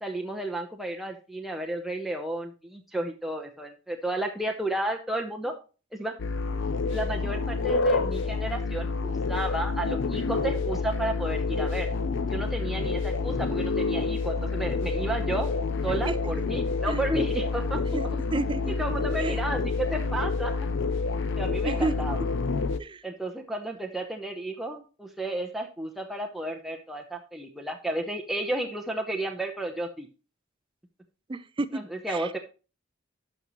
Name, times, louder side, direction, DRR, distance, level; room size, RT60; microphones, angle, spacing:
voice 1, 0.0-5.5 5.9-6.1 6.9-11.9 12.3-15.5 15.8-18.0 18.7-20.6 21.4-22.2 23.0-30.1 31.7-32.4, right 1 dB, ahead, 0.8 m, -32 dB
sound 1, 6.2-22.8, left 4 dB, 65° left, 0.5 m, -28 dB
voice 2, 17.9-18.7 19.2-19.4 21.6-21.9 22.8-23.0 31.3-31.8 32.1-32.4, right 2 dB, 25° right, 0.4 m, -31 dB
11.5 x 5.4 x 3.0 m
head